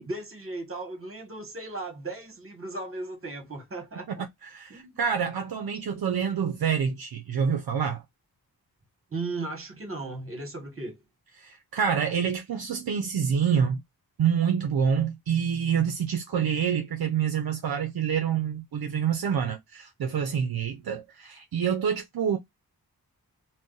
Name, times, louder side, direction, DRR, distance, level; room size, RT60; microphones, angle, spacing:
voice 1, 0.0-4.3 4.7-5.0 9.1-11.0, right 2 dB, 35° right, 1.2 m, -36 dB
voice 2, 4.4-8.0 11.4-13.8 14.2-22.4, right 7 dB, 70° right, 0.6 m, -27 dB
2.5 x 2.2 x 3.7 m
wide cardioid pair, 95°, 38 cm